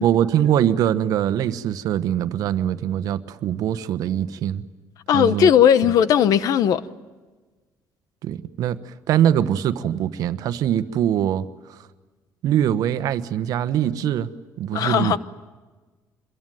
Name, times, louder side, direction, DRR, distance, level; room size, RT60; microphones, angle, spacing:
voice 1, 0.0-4.6 5.1-5.5 8.2-11.4 11.7-11.8 12.4-14.3 14.6-15.1, right 10 dB, 70° right, 1.1 m, -22 dB
voice 2, 5.1-6.8 14.7-15.2, left 9 dB, 65° left, 1.0 m, -17 dB
26.5 x 22.0 x 9.2 m
cardioid pair, 130°, 7 cm